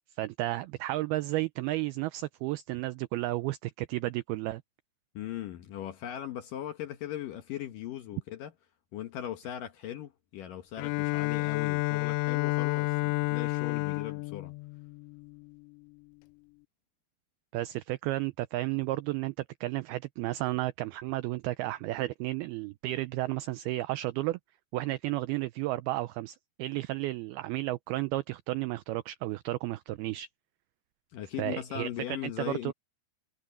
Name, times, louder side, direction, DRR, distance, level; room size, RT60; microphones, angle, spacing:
voice 1, 0.1-4.6 17.5-24.4 24.7-30.3 31.4-32.7, right 17 dB, 90° right, 2.2 m, -33 dB
voice 2, 5.1-8.5 8.9-14.5 31.1-32.7, left 11 dB, 65° left, 2.3 m, -39 dB
Bowed string instrument, 10.8-15.6, left 22 dB, 90° left, 2.9 m, -30 dB
omnidirectional pair, 5.1 m